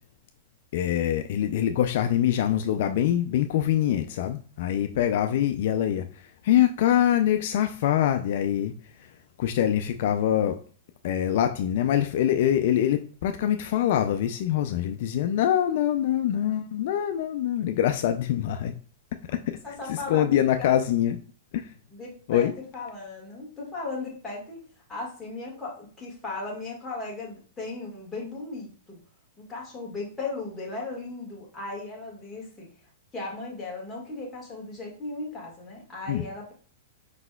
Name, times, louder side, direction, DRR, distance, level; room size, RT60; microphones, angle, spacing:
voice 1, 0.7-9.1 9.4-10.6 11.0-18.7 19.2-19.6 19.9-21.2 21.5-21.7 22.3-22.5 36.1-36.2, left 11 dB, 55° left, 0.3 m, -24 dB
voice 2, 19.6-20.8 21.9-24.6 24.9-29.0 29.4-32.7 33.1-36.5, left 3 dB, 10° left, 1.6 m, -37 dB
5.2 x 4.1 x 2.2 m
hypercardioid pair, 155°, 0 cm